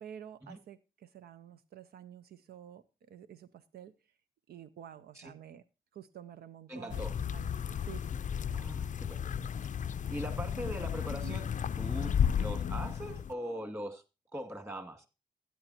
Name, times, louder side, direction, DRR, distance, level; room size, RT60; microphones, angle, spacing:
voice 1, 0.0-3.9 4.5-5.6 5.9-7.0 7.3-8.1 8.5-8.6 11.1-11.4, right 9 dB, 85° right, 13 dB, 0.5 m, -50 dB
voice 2, 6.7-7.1 8.5-9.5 10.1-11.5 11.8-14.0 14.3-15.1, equal, 15° right, 6 dB, 2.3 m, -41 dB
sound 1, 6.9-13.3, left 8 dB, 55° left, 0.4 m, -33 dB
13.0 x 9.2 x 2.8 m, 0.28 s
cardioid pair, 50°, 16 cm